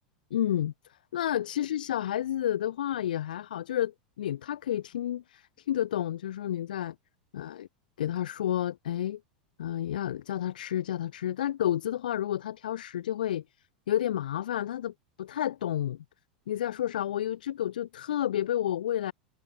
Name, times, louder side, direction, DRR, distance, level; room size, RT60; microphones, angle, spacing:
voice 1, 0.3-0.7 1.1-6.9 7.3-7.7 8.0-9.2 9.6-13.4 13.9-16.0 16.5-19.1, left 11 dB, 75° left, 0.7 m, -30 dB
hypercardioid pair, 95°, 5 cm